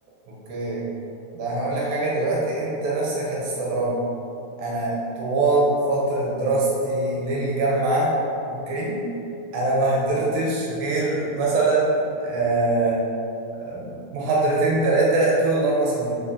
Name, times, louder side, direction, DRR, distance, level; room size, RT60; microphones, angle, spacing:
voice 1, 0.5-0.8 1.3-3.9 4.6-8.1 8.5-9.0 9.5-13.0 13.6-16.1, right 2 dB, 65° right, -5 dB, 3.1 m, -23 dB
6.5 x 5.5 x 6.5 m, 2.8 s
omnidirectional pair, 4.6 m